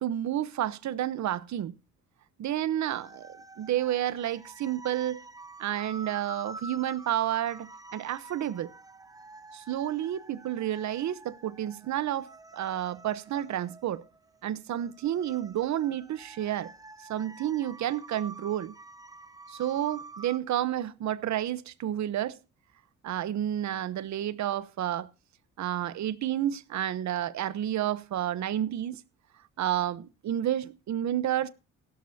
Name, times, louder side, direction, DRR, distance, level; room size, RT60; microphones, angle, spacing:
voice 1, 0.0-1.7 2.4-5.2 5.6-8.7 9.5-14.0 14.4-16.7 17.1-18.7 19.5-22.4 23.0-25.1 25.6-29.0 29.6-31.5, right 11 dB, 70° right, 1.0 m, -30 dB
sound 1, 2.9-20.4, right 3 dB, 10° right, 0.7 m, -47 dB
17.0 x 13.0 x 2.8 m
cardioid pair, 90°, 30 cm